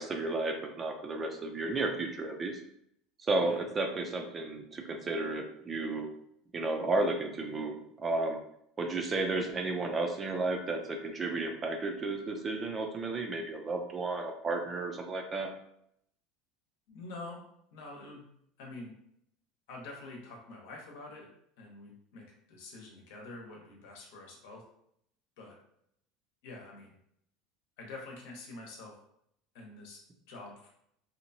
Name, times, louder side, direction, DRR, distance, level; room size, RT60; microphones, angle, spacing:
voice 1, 0.0-2.6 3.2-6.1 6.5-8.4 8.8-15.5, right 2 dB, 25° right, 4 dB, 0.4 m, -33 dB
voice 2, 16.9-17.4 17.7-18.3 18.6-18.9 19.7-21.3 21.6-24.6 25.4-25.6 26.4-27.0 27.8-28.9 29.5-30.0 30.3-30.7, left 2 dB, 80° left, -1 dB, 0.8 m, -46 dB
2.8 x 2.1 x 2.7 m, 0.73 s
supercardioid pair, 130°, 0 cm